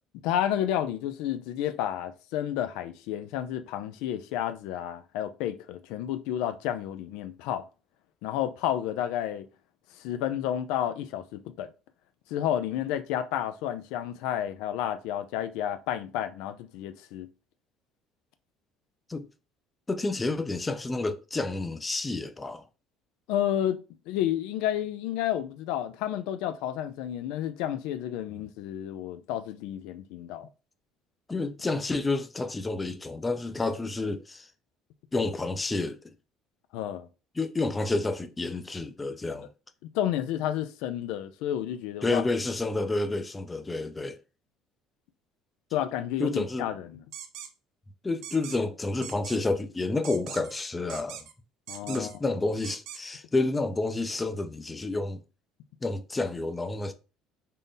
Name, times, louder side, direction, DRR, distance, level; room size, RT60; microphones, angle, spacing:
voice 1, 0.2-7.6 8.2-9.5 9.9-11.7 12.3-17.3 23.3-23.8 24.1-30.5 36.7-37.1 39.9-42.2 45.7-47.0 51.7-52.1, left 11 dB, 80° left, 0.3 m, -31 dB
voice 2, 19.9-22.6 31.3-34.5 35.1-36.1 37.4-39.5 42.0-44.2 46.2-46.7 48.0-51.2 51.9-55.2 55.8-56.9, left 2 dB, 20° left, 0.5 m, -29 dB
sound 1, 47.1-47.5 48.2-48.6 49.0-49.4 50.0-50.6 50.9-51.3 51.7-52.2 52.6-53.0, right 9 dB, 75° right, 0.6 m, -41 dB
3.7 x 2.1 x 3.9 m
supercardioid pair, 100°, 0 cm